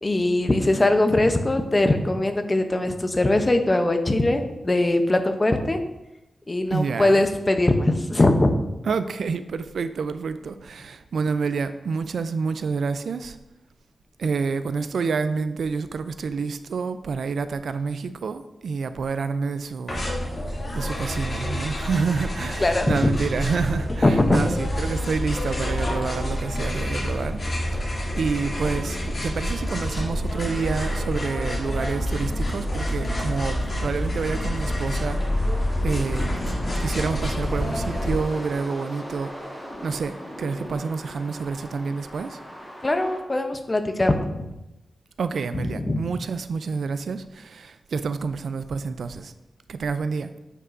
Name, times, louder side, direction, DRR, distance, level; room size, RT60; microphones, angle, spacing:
voice 1, 0.0-5.8 6.5-8.5 22.6-23.1 24.0-24.4 42.8-44.4 45.9-46.0, left 2 dB, 25° left, 6 dB, 0.6 m, -21 dB
voice 2, 6.7-7.2 8.8-13.4 14.2-20.0 20.7-27.4 27.7-27.8 28.2-35.2 35.8-36.3 36.8-39.6 39.8-42.4 45.2-49.3 49.7-50.3, right 5 dB, 80° right, 11 dB, 0.4 m, -28 dB
sound 1, 19.9-38.2, equal, 45° left, 2.4 m, -27 dB
sound 2, 30.7-43.2, equal, ahead, 2.7 m, -40 dB
9.5 x 5.5 x 2.6 m, 0.95 s
wide cardioid pair, 120°, 0 cm